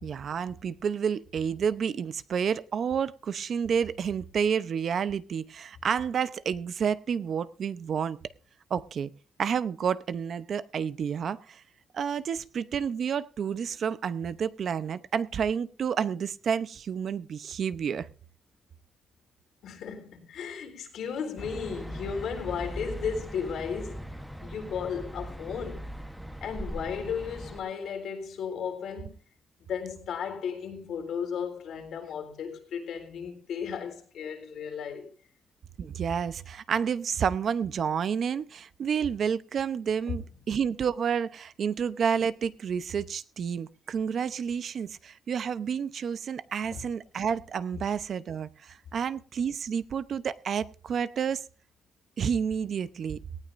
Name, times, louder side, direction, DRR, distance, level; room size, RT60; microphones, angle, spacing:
voice 1, 0.0-8.2 8.7-9.1 9.4-11.6 11.9-18.1 35.8-51.4 52.2-53.2, right 7 dB, 55° right, 0.7 m, -30 dB
voice 2, 19.6-25.9 26.4-29.2 29.6-35.1 40.1-40.2 46.7-46.8, left 7 dB, 80° left, 3.8 m, -35 dB
sound 1, 21.4-27.6, equal, ahead, 1.1 m, -40 dB
18.5 x 16.5 x 2.6 m
cardioid pair, 125°, 0 cm